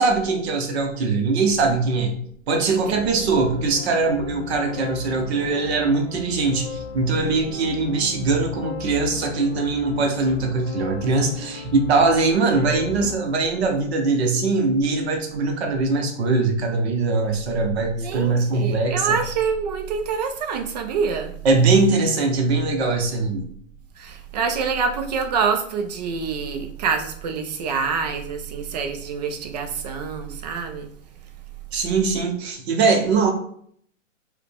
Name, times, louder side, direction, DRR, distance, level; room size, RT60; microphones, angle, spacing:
voice 1, 0.0-2.1 2.5-19.2 21.4-23.4 31.7-33.3, right 3 dB, 55° right, 0.9 m, -21 dB
voice 2, 2.7-3.2 18.0-21.3 24.0-30.9, right 5 dB, 35° right, 0.4 m, -26 dB
sound 1, 2.9-13.2, left 4 dB, 25° left, 0.5 m, -37 dB
4.6 x 2.2 x 3.4 m
hypercardioid pair, 135°, 40 cm